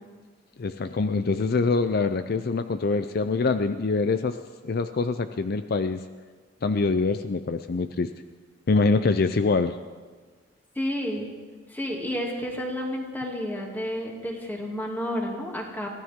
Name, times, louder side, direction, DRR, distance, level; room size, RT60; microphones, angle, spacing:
voice 1, 0.6-4.4 4.6-6.0 6.6-8.1 8.7-9.8, left 4 dB, 55° left, 10 dB, 0.5 m, -24 dB
voice 2, 10.7-11.3 11.7-15.9, equal, 10° left, -1 dB, 2.5 m, -31 dB
23.5 x 16.0 x 3.7 m, 1.5 s
head